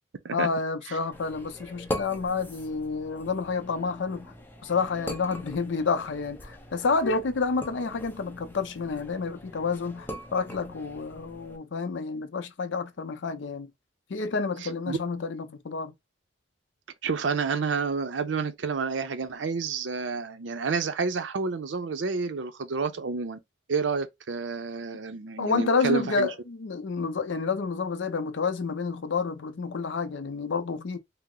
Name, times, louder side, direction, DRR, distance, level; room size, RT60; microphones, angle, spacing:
voice 1, 0.3-4.3 4.6-13.7 14.1-15.9 25.4-31.0, left 4 dB, 85° left, 0.5 m, -29 dB
sound 1, 1.1-11.6, left 1 dB, 10° left, 0.5 m, -41 dB
voice 2, 17.0-23.4 23.7-26.3, right 5 dB, 90° right, 0.5 m, -29 dB
2.8 x 2.0 x 3.7 m
head